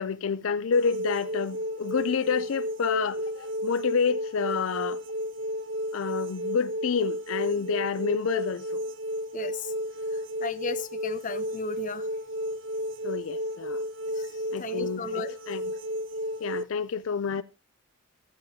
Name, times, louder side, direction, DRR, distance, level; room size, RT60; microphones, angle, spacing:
voice 1, 0.0-5.0 5.9-8.8 13.0-13.8 14.5-15.8 16.4-17.4, left 5 dB, 75° left, 0.5 m, -29 dB
sound 1, 0.7-16.6, equal, 60° right, 0.4 m, -33 dB
voice 2, 9.3-9.7 10.1-12.1 14.2-14.3 14.6-15.3, left 4 dB, 40° left, 0.7 m, -35 dB
14.0 x 8.6 x 2.7 m
head